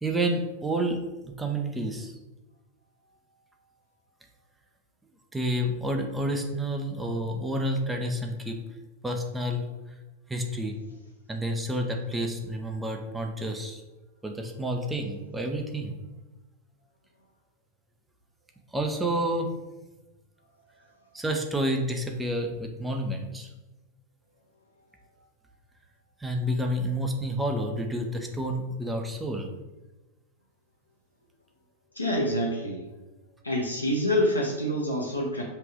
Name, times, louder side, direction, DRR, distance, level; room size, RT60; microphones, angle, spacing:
voice 1, 0.0-2.1 5.3-8.6 9.0-9.6 10.3-10.7 11.3-13.8 14.2-15.9 18.7-19.5 21.1-23.5 26.2-29.5, right 1 dB, 10° right, 2 dB, 0.6 m, -29 dB
voice 2, 32.0-32.8 33.4-35.4, equal, 85° left, -2 dB, 0.7 m, -26 dB
5.5 x 2.5 x 3.6 m, 1.1 s
figure-of-eight pair, 90°, 0 cm